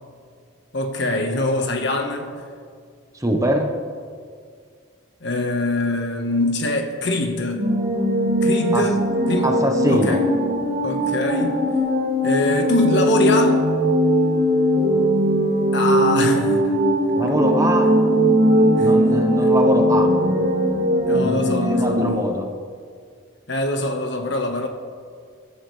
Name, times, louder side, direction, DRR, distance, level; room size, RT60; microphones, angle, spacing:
voice 1, 0.7-2.3 5.2-7.7 8.4-9.0 9.3-9.5 9.9-10.2 10.8-11.6 12.2-13.7 15.7-16.7 18.8-18.9 19.4-19.5 21.1-22.3 23.5-24.7, left 2 dB, 60° left, 4 dB, 1.3 m, -23 dB
voice 2, 3.1-3.7 8.7-8.9 9.4-10.2 17.1-17.9 18.8-20.1 21.2-22.5, right 1 dB, 15° right, 3 dB, 1.0 m, -23 dB
sound 1, 7.5-22.1, equal, 40° right, 2.1 m, -19 dB
23.5 x 13.0 x 3.3 m, 2.1 s
head